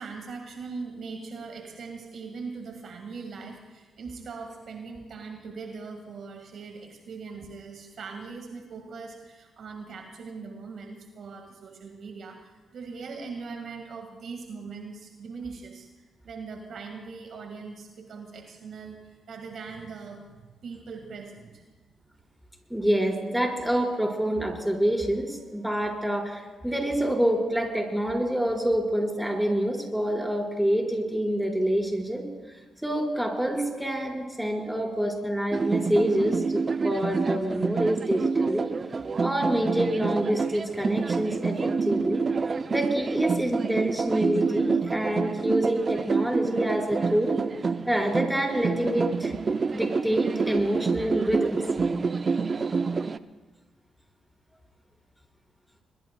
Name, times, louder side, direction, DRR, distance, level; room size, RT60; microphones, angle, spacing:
voice 1, 0.0-21.6, right 4 dB, 65° right, 3 dB, 2.0 m, -41 dB
voice 2, 22.7-32.3 32.8-38.7 39.2-42.3 42.7-47.3 47.9-49.3 49.7-51.6, right 1 dB, 5° right, -1 dB, 5.2 m, -27 dB
sound 1, 35.5-53.2, right 4 dB, 45° right, 0.6 m, -28 dB
23.5 x 22.0 x 2.3 m, 1.3 s
hypercardioid pair, 45°, 0 cm